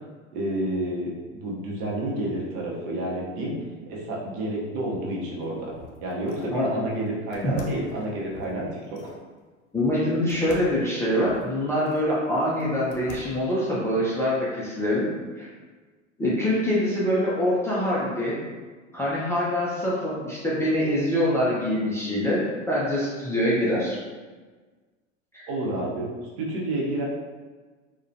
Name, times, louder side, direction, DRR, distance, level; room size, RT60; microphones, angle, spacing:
voice 1, 0.3-3.6 3.9-5.7 6.0-9.0 25.5-26.1 26.4-27.0, right 1 dB, 55° right, -4 dB, 0.8 m, -29 dB
sound 1, 5.3-6.6 7.3-9.2 10.3-12.1 12.6-13.5, left 2 dB, 75° left, 0.6 m, -44 dB
voice 2, 9.7-15.1 15.4-15.5 16.2-18.4 18.9-24.0 25.3-25.5, equal, 10° left, -8 dB, 0.3 m, -24 dB
2.3 x 2.1 x 2.6 m, 1.4 s
hypercardioid pair, 85°, 38 cm